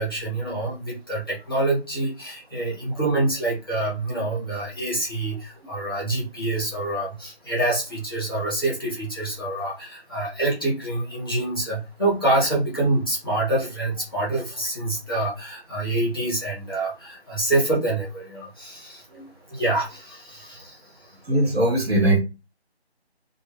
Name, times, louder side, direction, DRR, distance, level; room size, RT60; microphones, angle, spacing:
voice 1, 0.0-19.1 19.5-21.2, right 2 dB, 20° left, 0.7 m, -26 dB
voice 2, 21.3-22.2, right 1 dB, 65° right, 1.0 m, -20 dB
2.2 x 2.0 x 3.2 m
figure-of-eight pair, 160°, 33 cm